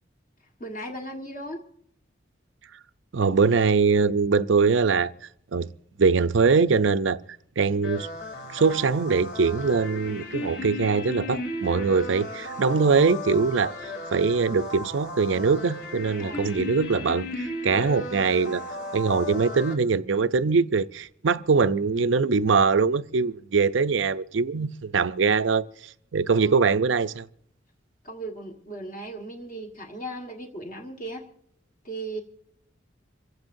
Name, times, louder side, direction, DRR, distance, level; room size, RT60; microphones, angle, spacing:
voice 1, 0.6-1.6 16.2-16.5 26.3-26.7 28.0-31.3 31.8-32.2, right 1 dB, 40° left, 1.5 m, -37 dB
voice 2, 3.1-5.1 5.5-5.7 6.0-7.2 7.6-8.1 8.5-13.7 14.1-18.6 18.9-25.7 26.1-27.3, right 4 dB, 75° right, 0.6 m, -22 dB
sound 1, 7.8-19.7, left 1 dB, 55° left, 3.5 m, -35 dB
26.5 x 16.0 x 2.6 m
head